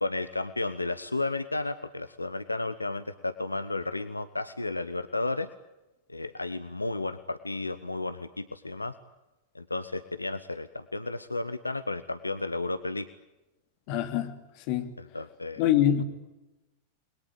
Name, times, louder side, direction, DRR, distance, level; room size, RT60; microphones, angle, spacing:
voice 1, 0.0-5.5 6.1-8.9 9.5-13.1 15.0-15.6, left 2 dB, 85° left, 1.0 m, -33 dB
voice 2, 13.9-14.3 14.7-14.9 15.6-16.0, left 10 dB, 45° left, 2.9 m, -24 dB
29.5 x 22.0 x 9.1 m
figure-of-eight pair, 90°, 0 cm